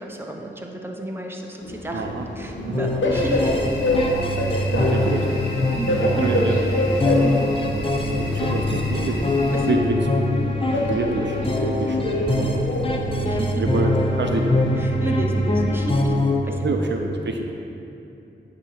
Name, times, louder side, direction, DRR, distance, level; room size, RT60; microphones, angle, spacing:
voice 1, 0.0-2.1 2.4-3.7 4.5-4.6 5.7-6.1 7.2-7.5 9.5-9.7 13.2-13.6 14.8-16.2 16.4-16.7, right 1 dB, 10° right, 1 dB, 0.8 m, -32 dB
Train, 1.6-15.6, left 1 dB, 80° left, 1.0 m, -27 dB
voice 2, 1.9-2.3 2.6-2.9 4.7-5.8 6.2-6.7 7.0-7.2 7.6-9.2 9.6-13.0 13.6-14.6 16.5-17.5, right 3 dB, 65° right, 3 dB, 0.5 m, -27 dB
sound 1, 2.7-16.4, left 2 dB, 30° left, 0.6 m, -23 dB
sound 2, 3.1-9.7, left 1 dB, 55° left, 1.3 m, -34 dB
8.5 x 2.9 x 5.8 m, 2.8 s
cardioid pair, 55°, 20 cm